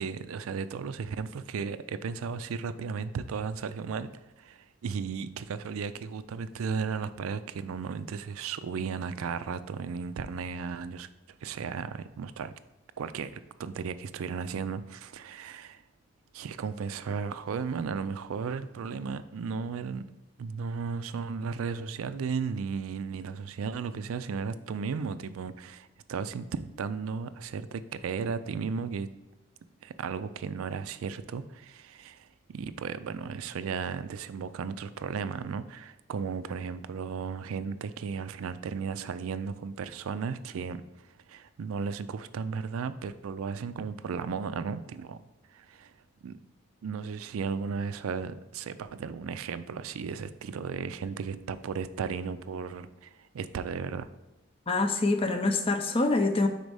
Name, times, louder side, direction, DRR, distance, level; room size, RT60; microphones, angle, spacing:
voice 1, 0.0-4.1 4.4-11.1 11.4-12.5 13.0-15.8 16.3-20.1 20.4-29.1 29.8-40.8 41.3-45.2 45.5-45.9 46.2-46.4 46.8-54.1, right 5 dB, 80° right, 13 dB, 0.4 m, -35 dB
voice 2, 54.7-56.5, left 2 dB, 25° left, 6 dB, 0.5 m, -25 dB
5.3 x 4.3 x 4.7 m, 1.0 s
head